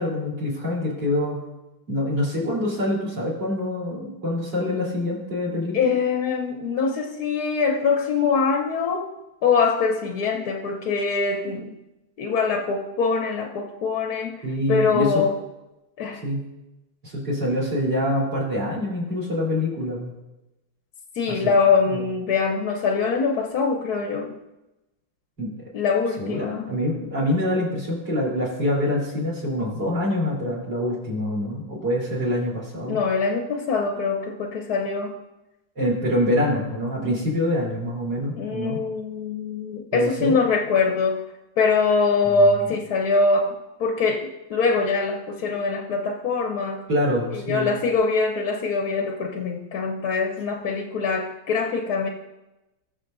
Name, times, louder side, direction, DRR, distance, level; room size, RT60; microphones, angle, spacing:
voice 1, 0.0-1.4 1.9-6.0 14.4-15.3 16.2-16.4 17.0-20.1 21.3-21.6 21.9-22.0 25.4-25.7 26.2-33.0 35.8-38.8 39.9-40.4 42.2-42.7 46.9-47.7, left 1 dB, 55° right, -3 dB, 4.3 m, -25 dB
voice 2, 5.7-9.1 9.4-11.7 12.2-15.3 16.0-16.2 21.2-24.4 25.7-26.8 32.9-35.2 38.4-41.2 41.6-46.8 47.3-52.1, left 4 dB, 60° left, 2 dB, 1.1 m, -23 dB
20.0 x 6.9 x 2.6 m, 1.0 s
omnidirectional pair, 2.3 m